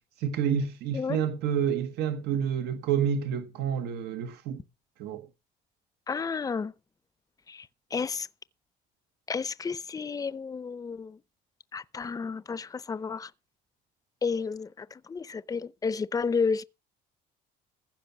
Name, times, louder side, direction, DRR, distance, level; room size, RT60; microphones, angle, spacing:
voice 1, 0.2-4.6 5.0-5.3, right 8 dB, 80° right, 1.4 m, -29 dB
voice 2, 6.1-6.7 7.5-7.7 7.9-8.3 9.3-11.2 11.7-13.3 14.2-16.6, left 5 dB, 20° left, 0.6 m, -31 dB
15.0 x 5.7 x 7.0 m
cardioid pair, 110°, 17 cm